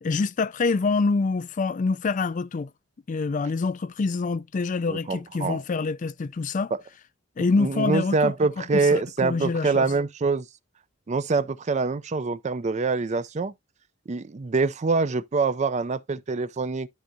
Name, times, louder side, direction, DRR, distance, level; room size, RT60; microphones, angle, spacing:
voice 1, 0.0-2.7 3.1-6.7 7.4-9.9, left 4 dB, 40° left, 0.4 m, -26 dB
voice 2, 4.9-5.6 7.4-10.5 11.1-13.5 14.1-16.9, right 4 dB, 35° right, 0.4 m, -25 dB
13.0 x 4.5 x 2.7 m
head